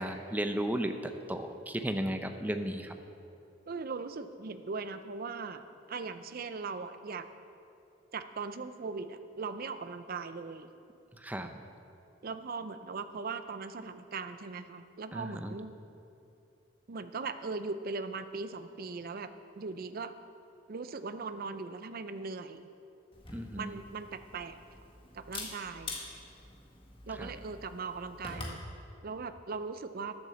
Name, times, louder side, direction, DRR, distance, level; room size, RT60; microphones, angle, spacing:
voice 1, 0.0-2.9 11.1-11.6 15.1-15.6 23.3-23.8 27.1-27.3, right 1 dB, 10° right, 6 dB, 0.6 m, -35 dB
voice 2, 3.7-5.6 5.9-7.3 8.1-10.7 12.2-15.7 16.9-19.3 19.6-20.1 20.7-22.7 23.5-24.6 25.1-25.9 27.1-28.6 29.0-30.2, right 4 dB, 50° right, 10 dB, 0.5 m, -39 dB
Camera, 23.1-28.6, left 2 dB, 30° left, 1.6 m, -45 dB
10.5 x 7.4 x 6.9 m, 2.7 s
head